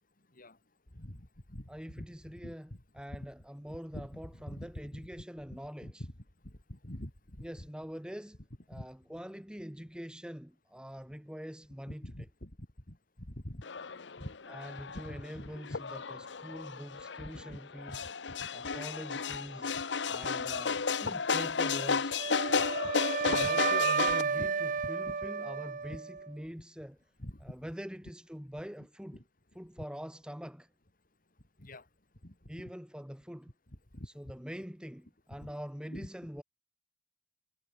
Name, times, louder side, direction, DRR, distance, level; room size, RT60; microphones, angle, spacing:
voice 1, 0.9-1.7 1.9-2.1 2.4-2.5 3.1-3.3 3.9-4.1 4.5-5.0 5.5-6.1 6.4-7.1 7.4-7.5 8.7-8.9 11.9-13.6 14.2-14.3 14.9-15.8 17.3-17.6 17.9-18.0 18.4-18.5 19.7-19.8 22.8-22.9 23.3-23.5 24.4-24.5 27.2-27.4 29.1-29.2 31.6-31.8 32.2-32.6 33.9-34.1 35.4-35.5 35.9-36.1, left 1 dB, 50° left, 3.4 m, -45 dB
voice 2, 1.7-6.0 7.4-8.4 8.7-12.3 14.5-18.1 18.5-19.7 20.1-22.2 23.1-27.0 27.4-29.2 29.5-30.7 32.5-33.5 34.1-36.4, equal, 5° right, 1.7 m, -44 dB
sound 1, 13.6-24.2, left 5 dB, 75° left, 1.0 m, -33 dB
Wind instrument woodwind instrument, 22.2-26.3, right 6 dB, 50° right, 0.8 m, -32 dB
head